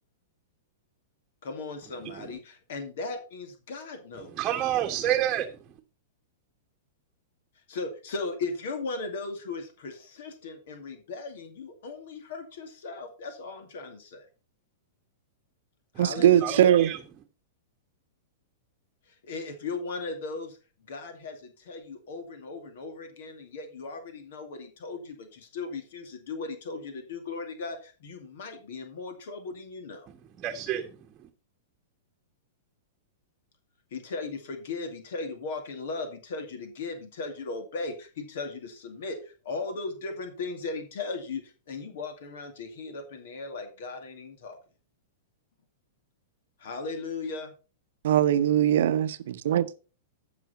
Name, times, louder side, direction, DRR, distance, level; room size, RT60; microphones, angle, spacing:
voice 1, 1.4-4.7 7.7-14.3 16.0-16.7 19.1-20.6 20.9-30.1 33.9-44.6 46.6-47.5, left 3 dB, 55° left, 2.2 m, -37 dB
voice 2, 4.4-5.5 16.4-17.0 30.4-30.8, right 12 dB, 30° right, 1.2 m, -28 dB
voice 3, 16.0-16.9 48.0-49.7, right 11 dB, 55° right, 0.9 m, -21 dB
15.0 x 6.2 x 4.2 m
figure-of-eight pair, 100°, 0 cm